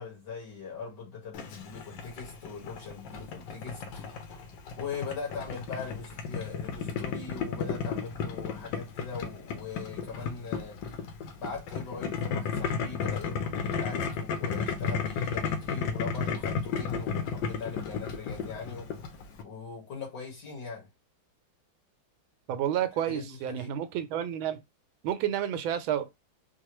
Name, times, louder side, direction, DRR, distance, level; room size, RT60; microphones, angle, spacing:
voice 1, 0.0-4.4 4.8-10.8 11.4-18.9 19.4-20.9 23.1-23.7, left 5 dB, 60° left, 2.3 m, -41 dB
Boiling, 1.3-19.4, left 6 dB, 75° left, 1.4 m, -34 dB
voice 2, 22.5-24.6 25.0-26.1, right 10 dB, 85° right, 1.4 m, -30 dB
4.7 x 2.2 x 3.0 m
omnidirectional pair, 2.2 m